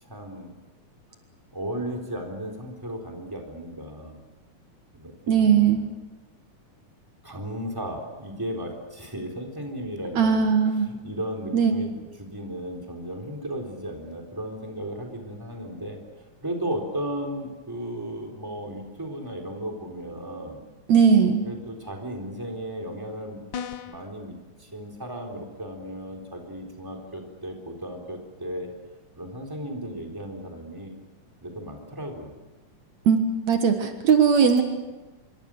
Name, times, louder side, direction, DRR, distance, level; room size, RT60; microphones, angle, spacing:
voice 1, 0.0-0.6 1.5-4.2 5.0-5.9 7.2-10.5 10.9-16.0 16.4-20.6 21.4-23.4 23.8-28.7 29.2-31.0 31.4-32.3, equal, 5° right, 1 dB, 3.9 m, -35 dB
voice 2, 5.3-5.8 10.2-10.9 11.5-11.7 20.9-21.4 33.1-33.2 33.5-34.6, right 6 dB, 70° right, 6 dB, 2.8 m, -19 dB
sound 1, 23.5-24.1, left 8 dB, 80° left, 1.0 m, -35 dB
26.5 x 24.0 x 6.5 m, 1.1 s
omnidirectional pair, 3.4 m